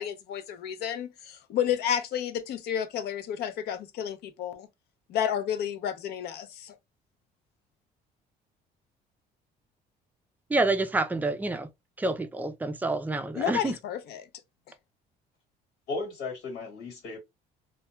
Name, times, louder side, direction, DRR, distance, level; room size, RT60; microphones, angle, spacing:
voice 1, 0.0-4.7 5.1-6.7 13.3-14.2, left 9 dB, 70° left, 0.5 m, -31 dB
voice 2, 10.5-11.7 12.0-13.7, right 2 dB, 10° right, 0.4 m, -28 dB
voice 3, 15.9-17.2, left 3 dB, 85° left, 1.4 m, -35 dB
2.2 x 2.2 x 3.0 m
cardioid pair, 110°, 17 cm